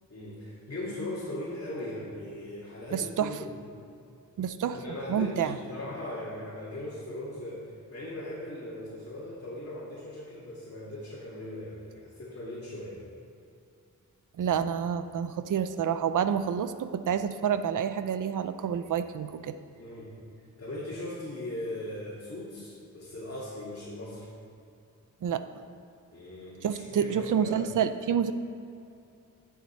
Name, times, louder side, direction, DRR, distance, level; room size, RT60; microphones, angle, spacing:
voice 1, 0.1-3.6 4.7-13.0 19.8-20.1 20.6-24.3 26.1-27.6, left 1 dB, 45° left, -8 dB, 2.3 m, -39 dB
voice 2, 2.9-3.4 4.4-4.8 5.1-5.6 14.4-19.5 25.2-25.4 26.6-28.3, right 8 dB, 65° right, 11 dB, 0.5 m, -28 dB
10.0 x 7.3 x 4.4 m, 2.6 s
wide cardioid pair, 80°, 34 cm